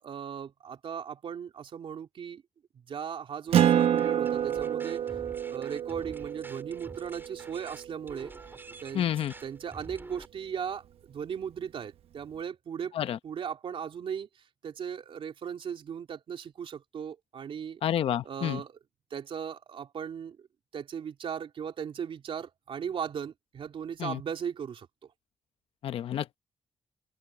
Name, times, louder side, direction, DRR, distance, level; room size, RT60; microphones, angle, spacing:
voice 1, 0.0-2.4 2.7-5.0 5.5-8.3 8.8-9.1 9.4-12.9 13.2-14.3 14.6-17.8 18.2-18.8 19.1-20.5 20.7-24.9, right 7 dB, 65° right, 3.2 m, -37 dB
Acoustic guitar, 3.5-8.5, right 10 dB, 85° right, 1.0 m, -28 dB
sound 1, 3.7-10.3, right 2 dB, 20° right, 4.2 m, -48 dB
voice 2, 8.9-9.3 12.9-13.2 17.8-18.6 24.0-24.2 25.8-26.4, left 10 dB, 75° left, 1.0 m, -29 dB
open air
cardioid pair, 85°, 10 cm